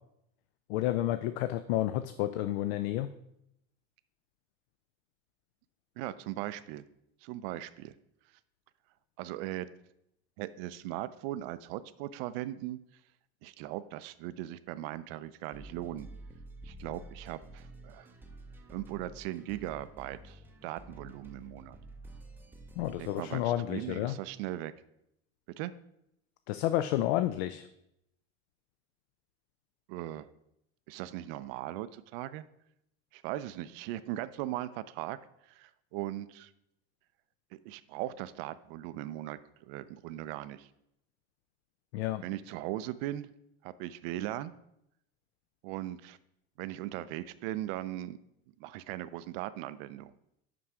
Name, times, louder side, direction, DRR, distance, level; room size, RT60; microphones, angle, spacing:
voice 1, 0.7-3.1 22.8-24.2 26.5-27.7 41.9-42.2, left 14 dB, 80° left, 11 dB, 0.5 m, -30 dB
voice 2, 6.0-6.8 7.2-7.9 9.2-9.7 10.4-12.8 13.4-16.1 16.6-18.1 18.7-21.8 23.0-24.7 25.6-25.7 29.9-30.3 30.9-32.4 33.1-35.2 35.5-36.5 37.7-40.7 42.2-43.3 43.6-44.5 45.6-46.2 46.6-48.2 48.6-50.1, right 14 dB, 65° right, 14 dB, 0.4 m, -39 dB
sound 1, 15.5-23.2, right 1 dB, 5° right, 0.5 m, -50 dB
6.0 x 5.4 x 4.7 m, 0.79 s
supercardioid pair, 140°, 31 cm